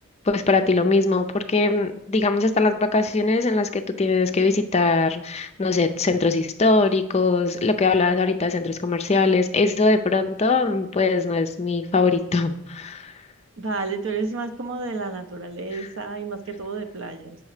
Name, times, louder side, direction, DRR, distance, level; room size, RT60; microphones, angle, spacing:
voice 1, 0.3-13.1, left 3 dB, 30° left, 8 dB, 0.4 m, -21 dB
voice 2, 13.6-17.4, right 3 dB, 60° right, 7 dB, 0.8 m, -31 dB
8.3 x 6.3 x 4.9 m, 0.82 s
head